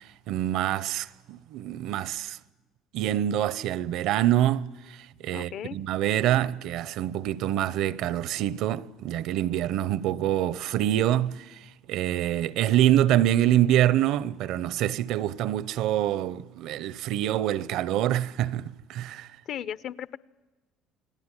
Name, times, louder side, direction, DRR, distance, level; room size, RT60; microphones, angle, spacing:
voice 1, 0.0-2.4 2.9-19.3, right 12 dB, 70° right, 0.8 m, -26 dB
voice 2, 5.3-5.8 19.5-20.2, left 9 dB, 55° left, 0.8 m, -36 dB
29.0 x 19.0 x 9.9 m
cardioid pair, 125°, 0 cm